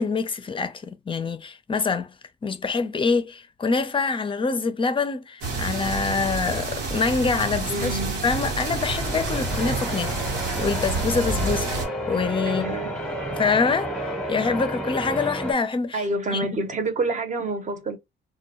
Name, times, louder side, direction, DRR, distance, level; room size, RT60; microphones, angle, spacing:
voice 1, 0.0-2.1 2.4-10.2 10.6-11.7 12.1-13.0 13.3-16.1 16.3-16.5, left 4 dB, 25° left, 0.4 m, -25 dB
sound 1, 5.4-11.9, right 3 dB, 90° right, 1.1 m, -28 dB
voice 2, 7.7-8.2 12.5-12.9 15.9-18.0, right 2 dB, 40° right, 0.7 m, -28 dB
Church bell, 8.2-15.5, equal, 5° left, 0.8 m, -31 dB
2.2 x 2.2 x 2.9 m
cardioid pair, 90°, 20 cm